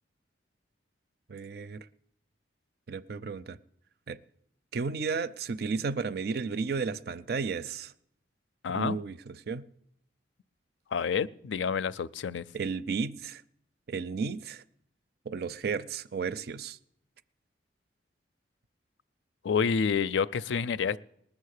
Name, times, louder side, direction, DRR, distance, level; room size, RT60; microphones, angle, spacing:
voice 1, 1.3-1.9 2.9-3.6 4.1-4.2 4.7-7.9 8.7-9.6 12.5-13.4 13.9-14.6 15.3-16.8, right 5 dB, 60° right, 0.5 m, -33 dB
voice 2, 8.6-9.0 10.9-12.4 19.4-21.0, left 6 dB, 85° left, 0.4 m, -28 dB
19.5 x 7.3 x 6.5 m
head